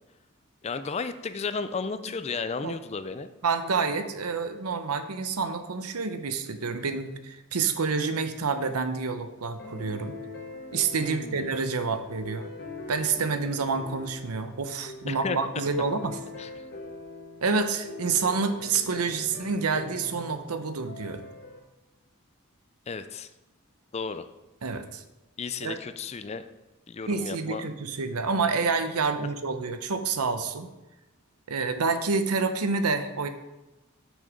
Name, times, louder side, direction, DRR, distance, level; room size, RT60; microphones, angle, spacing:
voice 1, 0.6-3.3 11.0-11.6 15.1-15.4 16.4-16.5 22.9-23.3 23.9-24.3 25.4-26.5 26.9-27.6, left 4 dB, 30° left, 11 dB, 0.4 m, -33 dB
voice 2, 3.4-10.1 10.7-12.5 12.9-16.2 17.4-21.2 24.6-25.0 25.6-25.8 27.1-30.7 31.5-33.3, right 4 dB, 85° right, 9 dB, 0.8 m, -28 dB
sound 1, 9.6-21.6, left 2 dB, 50° left, 1.3 m, -43 dB
6.5 x 6.3 x 5.1 m, 1.0 s
head